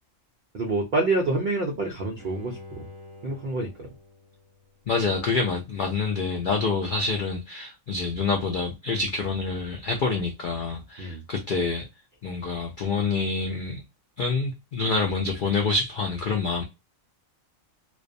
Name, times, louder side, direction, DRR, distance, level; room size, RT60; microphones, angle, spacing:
voice 1, 0.5-2.9 3.2-3.9 11.0-11.2, right 2 dB, 70° right, 0.4 m, -27 dB
Bowed string instrument, 2.2-5.3 5.7-5.8, left 3 dB, 20° right, 0.7 m, -47 dB
voice 2, 4.9-11.8 12.2-13.8 14.2-16.6, left 4 dB, 80° left, 0.4 m, -27 dB
2.4 x 2.2 x 2.5 m
omnidirectional pair, 1.4 m